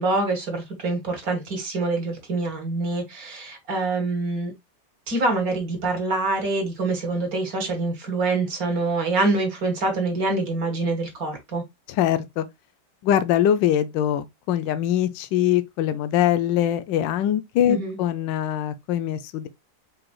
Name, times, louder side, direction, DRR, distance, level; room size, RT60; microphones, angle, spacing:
voice 1, 0.0-4.5 5.1-11.6 17.7-18.0, right 3 dB, 55° right, 2.0 m, -25 dB
voice 2, 12.0-12.4 13.0-19.5, left 11 dB, 85° left, 1.3 m, -23 dB
5.0 x 4.5 x 2.2 m
omnidirectional pair, 1.9 m